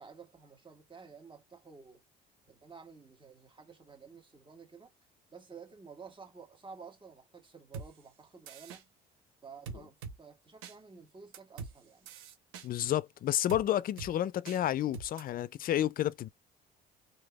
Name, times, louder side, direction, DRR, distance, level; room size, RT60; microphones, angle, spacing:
voice 1, 0.0-2.0 2.5-4.9 5.3-8.9 9.4-12.1, right 5 dB, 25° right, 1.6 m, -52 dB
sound 1, 7.7-7.9 8.5-8.8 9.7-10.2 10.6-10.7 11.3-11.7 12.1-12.7 13.5-13.6 14.0-14.1 14.5-14.6 14.9-15.2, right 5 dB, 85° right, 0.8 m, -43 dB
voice 2, 12.6-16.3, left 12 dB, 45° left, 0.4 m, -30 dB
3.3 x 2.7 x 2.3 m
supercardioid pair, 80°, 21 cm